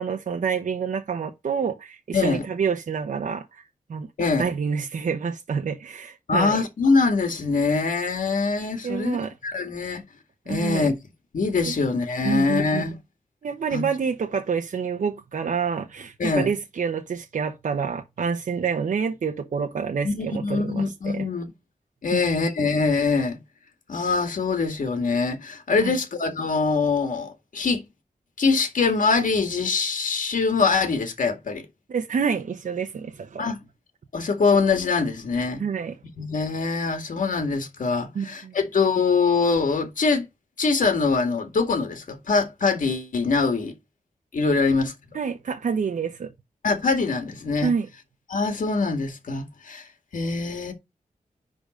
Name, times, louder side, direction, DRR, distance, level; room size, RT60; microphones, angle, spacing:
voice 1, 0.0-3.6 3.9-4.1 4.4-6.6 8.8-9.3 10.5-10.9 11.7-11.8 12.2-12.9 13.4-21.3 22.1-22.3 25.8-25.9 31.9-33.5 35.6-36.0 38.1-38.5 45.1-46.3 47.6-47.9, right 6 dB, 70° right, 0.9 m, -27 dB
voice 2, 2.1-2.4 4.2-4.5 6.3-9.2 9.4-10.0 10.5-10.9 11.3-13.0 13.7-13.9 16.2-16.5 20.0-21.5 22.0-23.4 23.9-27.9 28.4-31.6 33.4-33.6 34.1-35.6 36.2-40.3 40.6-43.7 44.3-44.9 46.6-47.7 48.3-49.9 50.1-50.7, left 4 dB, 75° left, 2.1 m, -23 dB
10.5 x 4.0 x 5.1 m
wide cardioid pair, 110°, 14 cm